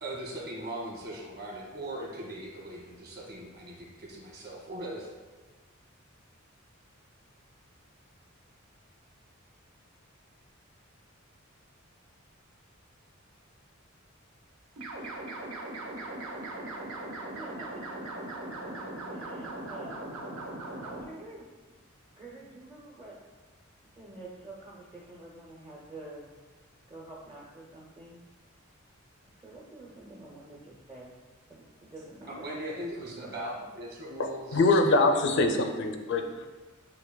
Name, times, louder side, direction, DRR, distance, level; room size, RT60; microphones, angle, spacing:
voice 1, 0.0-5.1 32.2-34.9, right 1 dB, 50° right, -4 dB, 1.4 m, -39 dB
sound 1, 14.8-21.0, right 2 dB, 70° right, 0.8 m, -39 dB
voice 2, 16.4-16.7 17.2-17.7 18.6-18.7 19.0-20.0 20.8-21.5 22.2-23.2 24.0-26.3 26.9-28.2 29.4-31.1 31.5-32.5 33.0-33.5, right 2 dB, 20° right, -5 dB, 0.5 m, -48 dB
voice 3, 34.1-36.5, left 2 dB, 55° left, 6 dB, 0.4 m, -24 dB
7.9 x 2.8 x 2.2 m, 1.3 s
head